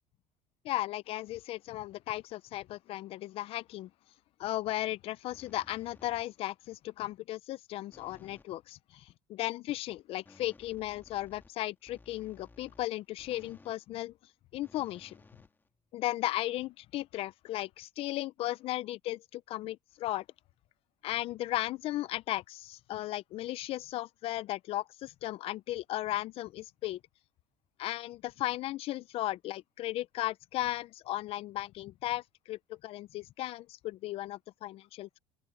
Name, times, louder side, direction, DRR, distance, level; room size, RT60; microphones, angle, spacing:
voice 1, 0.6-3.9 4.4-14.1 14.5-15.2 15.9-20.2 21.0-27.0 27.8-35.2, left 15 dB, 60° left, 0.6 m, -36 dB
sound 1, 5.3-6.5 7.9-8.6 10.2-13.8 14.6-16.1, left 3 dB, 20° left, 1.8 m, -58 dB
open air
supercardioid pair, 90°, 11 cm